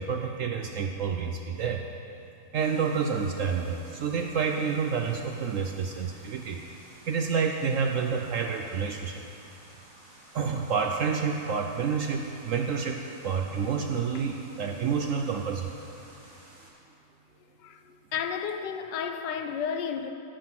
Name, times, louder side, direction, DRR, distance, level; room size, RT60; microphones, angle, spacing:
voice 1, 0.0-1.8 2.5-6.6 7.1-9.2 10.3-15.7, right 6 dB, 65° right, 0.8 m, -29 dB
sound 1, 2.5-16.7, right 1 dB, 85° right, 3.2 m, -53 dB
voice 2, 18.1-20.1, left 7 dB, 85° left, 1.3 m, -32 dB
15.0 x 5.8 x 6.1 m
omnidirectional pair, 1.9 m